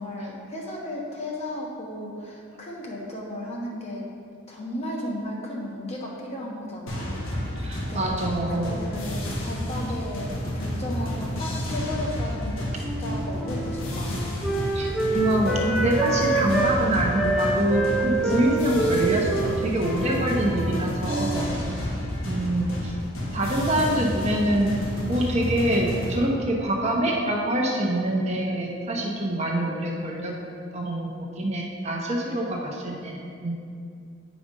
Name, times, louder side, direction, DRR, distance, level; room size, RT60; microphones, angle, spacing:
voice 1, 0.0-4.1 4.5-7.6 7.9-8.1 8.5-14.3, left 1 dB, 30° left, -2 dB, 1.2 m, -35 dB
sound 1, 6.9-26.2, left 1 dB, 85° left, 1.4 m, -30 dB
voice 2, 7.6-8.7 14.7-21.5 22.2-22.9 23.3-24.8 25.1-30.3 30.7-33.5, right 1 dB, 35° right, -1 dB, 1.0 m, -25 dB
Wind instrument woodwind instrument, 12.8-16.8 17.2-21.6, right 3 dB, ahead, 0.5 m, -27 dB
8.6 x 5.0 x 5.3 m, 2.3 s
head